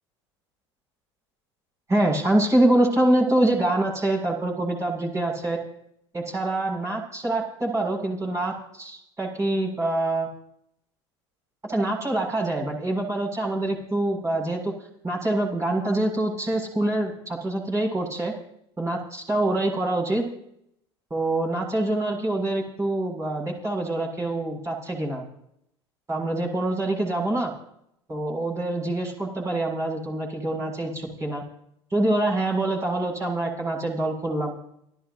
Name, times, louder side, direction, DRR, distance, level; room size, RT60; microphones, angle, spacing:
voice 1, 1.9-5.6 6.1-10.3 11.6-14.7 15.0-18.3 18.8-20.3 21.1-25.2 26.1-27.5 28.1-31.4 31.9-34.6, right 1 dB, 20° right, -1 dB, 7.3 m, -25 dB
29.5 x 14.0 x 2.8 m, 0.72 s
hypercardioid pair, 75°, 15 cm